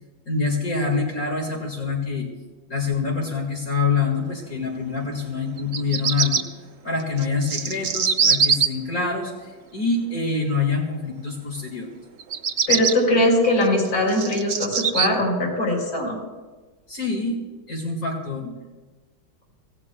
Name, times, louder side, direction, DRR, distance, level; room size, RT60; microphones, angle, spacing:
voice 1, 0.3-2.3 2.7-6.4 6.8-11.9 16.9-17.4 17.7-18.5, left 4 dB, 45° left, 0 dB, 2.2 m, -25 dB
Bird vocalization bird call bird song, 5.6-6.4 7.2-8.7 12.2-12.9 13.6-15.1, right 6 dB, 80° right, 0.6 m, -21 dB
voice 2, 12.7-16.2, left 1 dB, 85° left, -2 dB, 5.4 m, -21 dB
26.0 x 17.0 x 2.2 m, 1.3 s
omnidirectional pair, 2.2 m